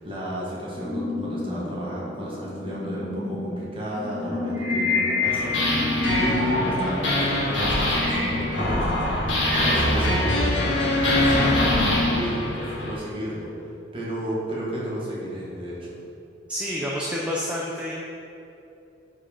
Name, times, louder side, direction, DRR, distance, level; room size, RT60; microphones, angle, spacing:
voice 1, 0.0-10.8 11.1-16.0, equal, 30° right, -6 dB, 1.4 m, -33 dB
sound 1, 0.8-12.2, left 2 dB, 10° left, 0.9 m, -32 dB
sound 2, 4.1-8.7 9.1-10.7, left 3 dB, 85° right, 1.5 m, -29 dB
sound 3, 5.2-12.9, left 1 dB, 80° left, 1.4 m, -23 dB
voice 2, 16.5-17.9, equal, 5° right, -4 dB, 0.5 m, -28 dB
5.0 x 4.9 x 5.0 m, 2.7 s
head